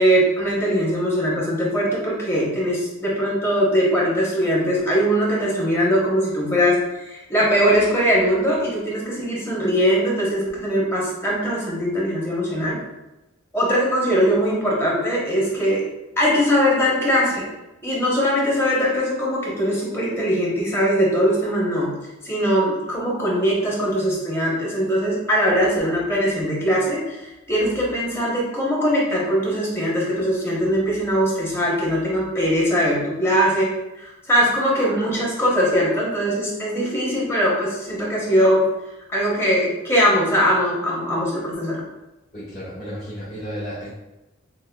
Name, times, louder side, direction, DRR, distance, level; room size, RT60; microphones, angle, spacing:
voice 1, 0.0-12.8 13.5-15.8 16.2-17.5 17.8-21.9 22.2-33.7 34.0-38.6 39.1-41.8, equal, 10° left, -5 dB, 0.9 m, -21 dB
voice 2, 42.3-43.9, equal, 40° left, -11 dB, 1.1 m, -33 dB
5.9 x 2.1 x 2.3 m, 0.97 s
head